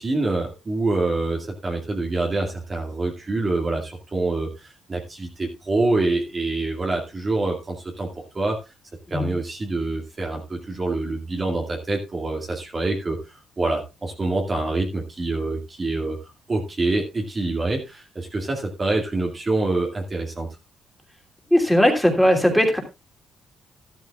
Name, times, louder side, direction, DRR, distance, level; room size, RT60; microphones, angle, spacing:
voice 1, 0.0-8.1 8.3-8.6 9.1-16.2 16.5-20.5, right 2 dB, 30° right, 1 dB, 2.2 m, -26 dB
voice 2, 21.5-22.8, equal, ahead, 1 dB, 2.9 m, -18 dB
12.5 x 12.0 x 2.4 m, 0.25 s
cardioid pair, 90°, 0 cm